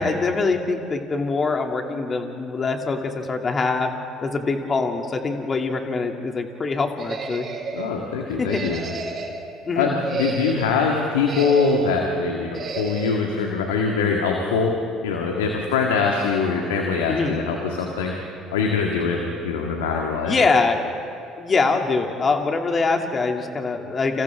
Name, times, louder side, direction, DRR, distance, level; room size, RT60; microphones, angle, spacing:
voice 1, 0.0-3.9 4.2-7.5 8.4-8.6 9.7-10.0 17.1-17.3 20.3-20.8 21.4-24.2, left 4 dB, 35° left, 3 dB, 2.7 m, -23 dB
sound 1, 7.0-7.9 8.5-9.4 9.9-10.8 11.2-12.0 12.5-13.2, right 4 dB, 45° right, 3.6 m, -31 dB
voice 2, 7.7-8.8 9.8-18.2 18.5-20.4, left 5 dB, 80° left, 0 dB, 1.9 m, -23 dB
29.5 x 28.0 x 3.7 m, 2.6 s
hypercardioid pair, 60°, 0 cm